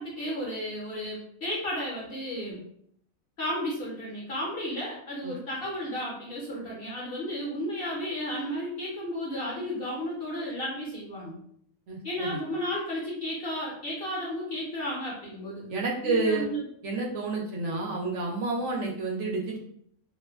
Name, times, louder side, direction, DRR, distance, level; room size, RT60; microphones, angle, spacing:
voice 1, 0.0-2.6 3.4-11.4 12.0-15.7 16.0-16.6, equal, 55° left, -4 dB, 0.7 m, -33 dB
voice 2, 11.9-12.3 15.7-16.4 16.8-19.6, right 3 dB, 70° right, -1 dB, 0.8 m, -29 dB
2.4 x 2.2 x 2.3 m, 0.67 s
omnidirectional pair, 1.4 m